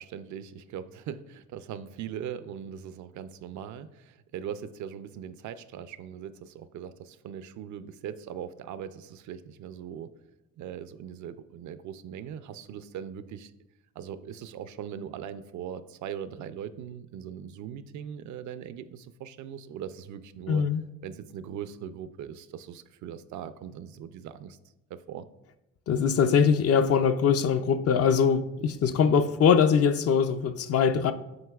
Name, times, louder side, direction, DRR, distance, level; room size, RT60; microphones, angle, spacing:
voice 1, 0.0-10.1 10.6-13.5 14.0-20.6 21.0-24.6 24.9-25.3, right 9 dB, 75° right, 13 dB, 0.5 m, -40 dB
voice 2, 20.5-20.8 25.9-31.1, left 6 dB, 50° left, 10 dB, 0.5 m, -22 dB
7.9 x 5.5 x 2.3 m, 0.96 s
cardioid pair, 90°, 30 cm